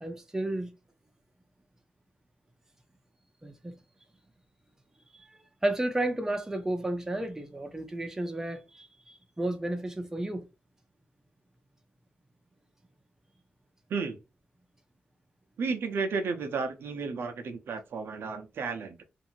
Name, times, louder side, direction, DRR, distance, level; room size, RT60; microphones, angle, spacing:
voice 1, 0.0-0.7 3.4-3.8 5.1-5.3 5.6-10.4, right 1 dB, 10° right, 0.6 m, -32 dB
voice 2, 15.6-19.0, right 4 dB, 75° right, 0.6 m, -33 dB
2.6 x 2.5 x 2.8 m
wide cardioid pair, 115°, 4 cm